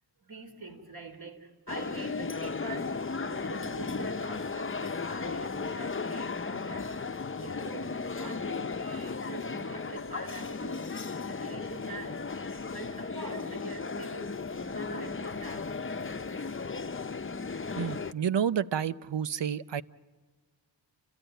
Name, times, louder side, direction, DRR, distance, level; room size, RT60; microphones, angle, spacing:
voice 1, 0.2-7.0 7.4-15.7, right 2 dB, 55° right, 5 dB, 3.9 m, -45 dB
sound 1, 1.7-18.1, left 4 dB, 30° left, 0.7 m, -35 dB
voice 2, 17.8-19.8, right 8 dB, 75° right, 15 dB, 0.7 m, -30 dB
29.5 x 15.5 x 9.2 m, 1.5 s
cardioid pair, 45°, 43 cm